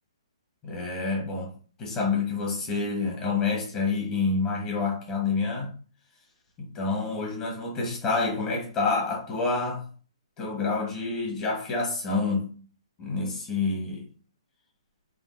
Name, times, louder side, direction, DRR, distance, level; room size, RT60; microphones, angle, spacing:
voice 1, 0.6-1.5 1.8-5.7 6.6-9.8 10.4-12.5 13.0-14.1, left 4 dB, 20° left, 1.1 m, -28 dB
3.5 x 2.5 x 2.2 m
hypercardioid pair, 140°, 3 cm